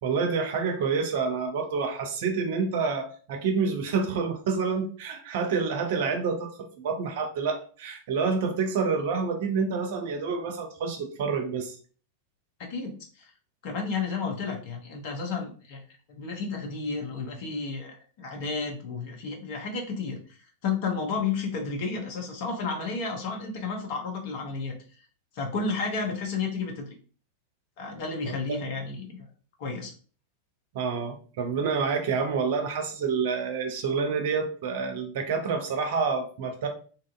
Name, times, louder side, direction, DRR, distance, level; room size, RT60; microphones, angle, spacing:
voice 1, 0.0-6.5 6.8-11.8 30.7-36.7, right 5 dB, 50° right, 5 dB, 0.5 m, -28 dB
voice 2, 12.7-13.3 13.6-15.8 16.1-20.4 20.6-24.7 25.3-26.9 27.8-29.3 29.6-29.9, left 4 dB, 50° left, 2 dB, 0.8 m, -32 dB
2.7 x 2.5 x 2.4 m, 0.40 s
figure-of-eight pair, 90°, 0 cm